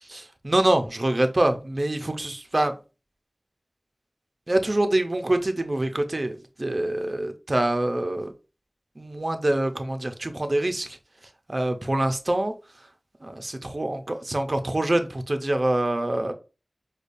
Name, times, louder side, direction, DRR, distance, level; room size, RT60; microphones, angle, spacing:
voice 1, 0.0-2.8 4.5-8.3 9.0-11.0 11.5-12.5 13.2-16.3, right 1 dB, 50° right, 0.5 m, -25 dB
5.0 x 2.3 x 2.6 m
wide cardioid pair, 40°, 0 cm